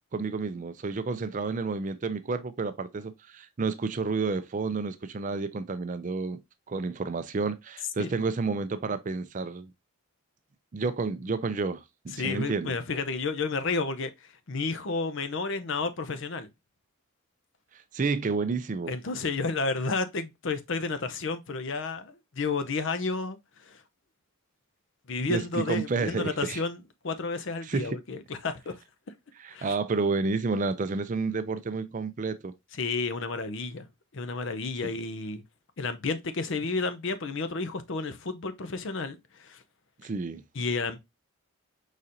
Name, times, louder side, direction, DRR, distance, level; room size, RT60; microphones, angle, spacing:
voice 1, 0.1-6.4 6.7-9.7 10.7-12.7 17.7-18.9 25.3-26.6 27.6-28.0 29.4-32.5 34.8-34.9 40.0-40.4, right 4 dB, 35° right, 0.4 m, -30 dB
voice 2, 12.1-16.5 18.9-23.8 25.1-28.7 29.5-29.8 32.7-33.9 34.1-35.4 35.8-39.6 40.5-41.0, left 4 dB, 55° left, 0.6 m, -31 dB
4.9 x 4.2 x 2.5 m
head